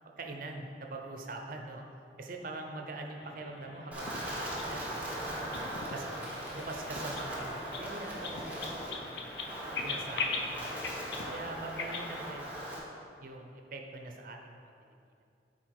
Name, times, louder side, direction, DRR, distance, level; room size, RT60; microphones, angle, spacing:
voice 1, 0.2-1.8 2.2-5.4 5.9-6.2 6.5-9.4 9.8-11.0 11.3-12.6 13.2-14.9, right 2 dB, 50° right, 3 dB, 0.7 m, -43 dB
sound 1, 3.2-12.2, left 4 dB, 70° left, 0.6 m, -41 dB
Wind, 3.9-12.8, right 1 dB, 10° right, 1.2 m, -39 dB
7.8 x 4.3 x 4.8 m, 2.5 s
head